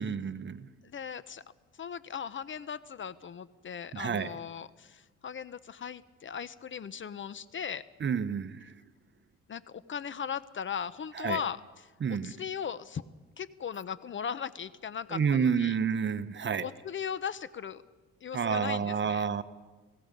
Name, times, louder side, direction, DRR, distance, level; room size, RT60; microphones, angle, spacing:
voice 1, 0.0-0.7 3.9-4.3 8.0-8.6 11.2-11.4 12.0-12.3 15.1-16.7 18.3-19.4, right 6 dB, 40° right, 12 dB, 1.0 m, -29 dB
voice 2, 0.8-1.4 1.8-7.8 9.5-13.0 13.4-15.8 16.6-17.8 18.2-19.3, left 7 dB, 40° left, 16 dB, 0.8 m, -38 dB
29.5 x 17.5 x 5.3 m, 1.3 s
cardioid pair, 90°, 30 cm